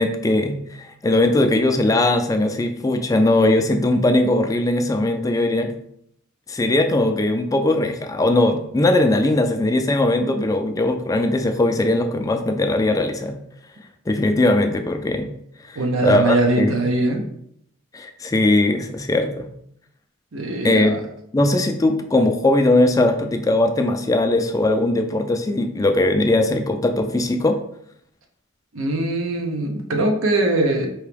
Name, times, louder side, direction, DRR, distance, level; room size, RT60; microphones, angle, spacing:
voice 1, 0.0-5.7 6.5-13.4 14.1-15.3 15.7-16.7 17.9-19.5 20.6-21.0 21.3-27.6, left 2 dB, 15° left, 6 dB, 0.3 m, -19 dB
voice 2, 15.8-17.2 20.3-21.0 28.7-30.9, right 2 dB, 70° right, 2 dB, 0.7 m, -21 dB
4.5 x 2.8 x 3.4 m, 0.73 s
head